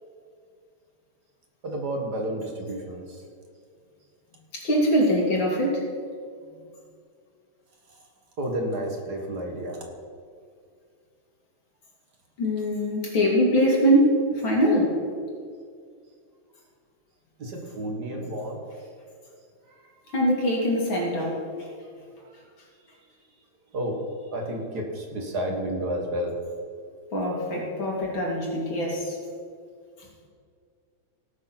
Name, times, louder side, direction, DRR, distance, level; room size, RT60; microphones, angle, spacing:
voice 1, 1.6-3.2 8.4-9.8 17.4-18.6 23.7-24.0 24.3-26.4, right 1 dB, 50° right, 1 dB, 2.0 m, -31 dB
voice 2, 4.5-5.9 12.4-15.0 20.1-21.4 27.1-29.2, equal, 70° left, -2 dB, 3.2 m, -23 dB
17.0 x 6.4 x 5.9 m, 2.2 s
omnidirectional pair, 2.3 m